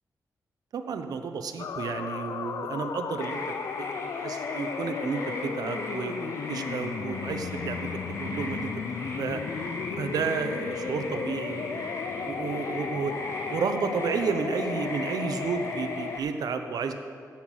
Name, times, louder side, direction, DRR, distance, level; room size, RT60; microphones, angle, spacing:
voice 1, 0.7-7.9 8.2-8.8 9.2-9.4 10.0-11.8 12.2-13.1 13.5-16.9, right 5 dB, 90° right, 7 dB, 0.8 m, -32 dB
sound 1, 1.6-16.2, left 6 dB, 70° left, 0.5 m, -35 dB
sound 2, 3.2-16.2, left 2 dB, 50° left, 1.7 m, -39 dB
15.0 x 5.9 x 6.3 m, 2.2 s
wide cardioid pair, 165°, 6 cm